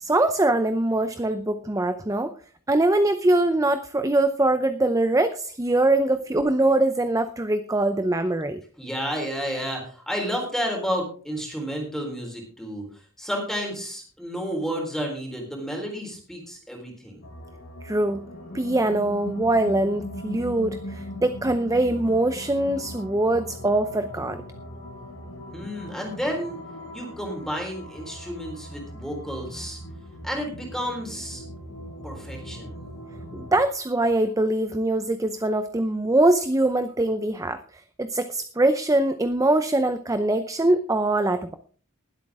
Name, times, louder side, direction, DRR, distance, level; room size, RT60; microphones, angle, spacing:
voice 1, 0.0-2.3 2.7-8.6 17.8-18.3 18.5-24.4 33.3-41.6, right 2 dB, 15° right, 10 dB, 0.6 m, -23 dB
voice 2, 8.8-17.3 25.5-26.6 26.9-29.8 30.2-31.4 32.0-32.8, equal, ahead, 0 dB, 3.8 m, -31 dB
sound 1, 17.2-33.6, equal, 85° left, 6.1 m, -39 dB
19.5 x 8.3 x 3.6 m, 0.42 s
head